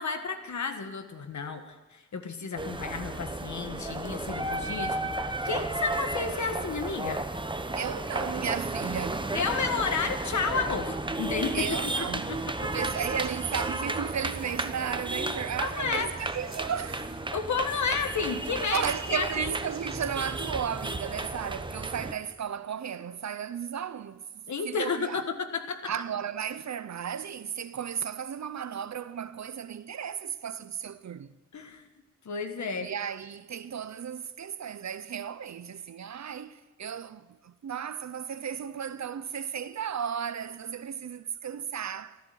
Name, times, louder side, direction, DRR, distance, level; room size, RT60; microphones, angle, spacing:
voice 1, 0.0-7.2 9.3-12.7 15.6-16.1 17.3-18.8 19.1-19.5 24.5-25.9 31.5-31.9 32.2-32.9, left 5 dB, 75° left, 1.5 m, -32 dB
sound 1, 2.6-22.1, right 2 dB, 15° right, 1.0 m, -33 dB
voice 2, 7.7-9.3 11.5-12.3 12.6-17.2 18.6-24.2 24.6-25.2 25.9-31.3 32.8-42.2, right 8 dB, 70° right, 0.7 m, -34 dB
14.0 x 13.5 x 5.7 m
cardioid pair, 75°, 29 cm